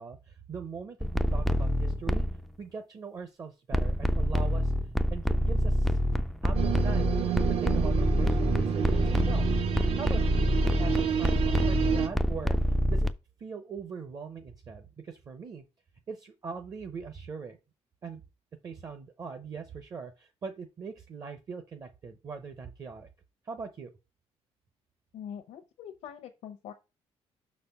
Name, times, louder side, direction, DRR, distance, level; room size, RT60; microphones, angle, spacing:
voice 1, 0.0-2.2 2.6-4.7 5.1-6.0 6.4-7.2 7.5-9.5 10.0-13.1 13.4-15.6 16.1-17.6 18.0-18.2 18.6-23.1 23.4-23.9, right 5 dB, 30° right, 0.7 m, -41 dB
sound 1, 1.0-2.4 3.7-13.1, equal, ahead, 0.3 m, -27 dB
sound 2, 6.5-12.1, right 7 dB, 65° right, 0.9 m, -29 dB
voice 2, 25.1-26.7, left 9 dB, 75° left, 0.8 m, -43 dB
6.0 x 4.2 x 5.5 m
cardioid pair, 165°, 11 cm